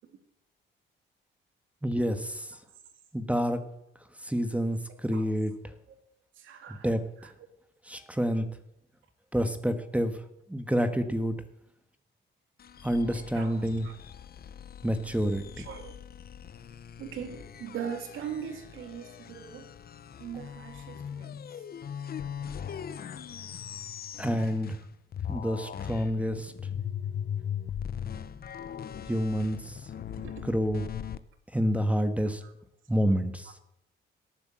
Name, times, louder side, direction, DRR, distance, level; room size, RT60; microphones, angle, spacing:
voice 1, 1.8-2.6 3.1-3.6 4.2-5.5 6.8-7.0 7.8-8.5 9.3-10.2 10.5-11.4 12.8-13.9 14.8-15.4 24.2-24.8 25.3-26.5 29.1-29.9 30.4-30.8 31.5-32.4 32.9-33.5, equal, 5° right, 9 dB, 1.5 m, -28 dB
voice 2, 6.4-6.9 7.2-7.3 13.1-13.6 13.8-14.0 15.6-16.0 17.0-19.7 20.2-21.6 30.2-30.5 32.1-32.5, right 8 dB, 80° right, 7 dB, 2.5 m, -41 dB
sound 1, 12.6-24.9 25.1-31.2, left 8 dB, 50° left, 0.9 m, -40 dB
18.0 x 8.3 x 7.5 m, 0.79 s
cardioid pair, 90°, 20 cm